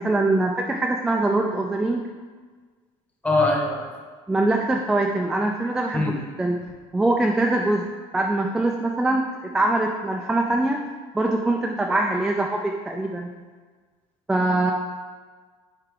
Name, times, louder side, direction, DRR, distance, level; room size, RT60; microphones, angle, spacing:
voice 1, 0.0-2.0 4.3-6.6 6.9-7.9 8.1-10.8 11.1-13.3 14.3-14.7, right 2 dB, 5° right, 1 dB, 0.3 m, -23 dB
voice 2, 3.2-3.8 5.9-6.1, left 2 dB, 10° left, 0 dB, 1.0 m, -21 dB
9.2 x 4.5 x 3.8 m, 1.5 s
cardioid pair, 170°, 13 cm